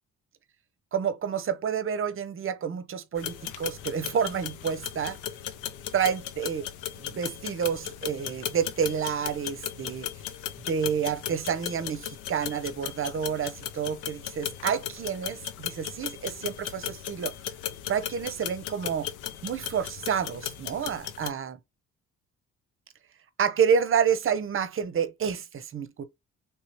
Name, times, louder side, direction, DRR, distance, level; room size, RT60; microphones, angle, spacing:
voice 1, 0.9-5.2 5.9-6.7 7.0-10.1 10.6-17.3 17.9-19.1 19.4-21.6 23.4-26.0, right 7 dB, 45° right, 0.7 m, -29 dB
sound 1, 3.2-21.3, left 11 dB, 85° left, 0.6 m, -37 dB
3.3 x 3.1 x 3.0 m
cardioid pair, 90°, 30 cm